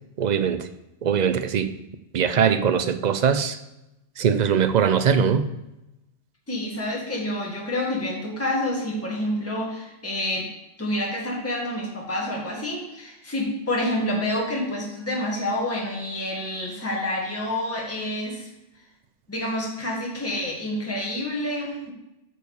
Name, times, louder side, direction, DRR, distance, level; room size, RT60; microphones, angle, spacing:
voice 1, 0.2-0.6 1.0-1.7 2.1-3.6 4.2-5.5, right 7 dB, 50° right, 10 dB, 0.6 m, -21 dB
voice 2, 6.5-10.5 10.8-18.5 19.3-21.9, left 1 dB, 15° left, -3 dB, 1.7 m, -28 dB
9.0 x 4.7 x 6.9 m, 0.94 s
omnidirectional pair, 1.1 m